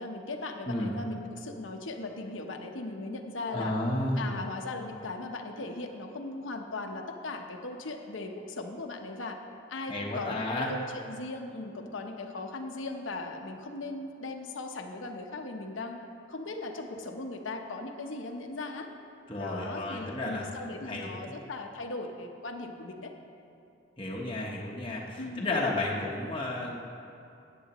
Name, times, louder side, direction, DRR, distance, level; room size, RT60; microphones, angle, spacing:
voice 1, 0.0-3.8 4.2-9.4 9.7-16.0 16.3-18.9 19.4-23.1 25.2-25.6, left 2 dB, 80° left, 4 dB, 0.9 m, -38 dB
voice 2, 3.5-4.3 9.9-10.7 19.3-21.1 24.0-26.8, left 2 dB, 25° left, -3 dB, 0.9 m, -32 dB
14.0 x 9.3 x 3.0 m, 2.6 s
head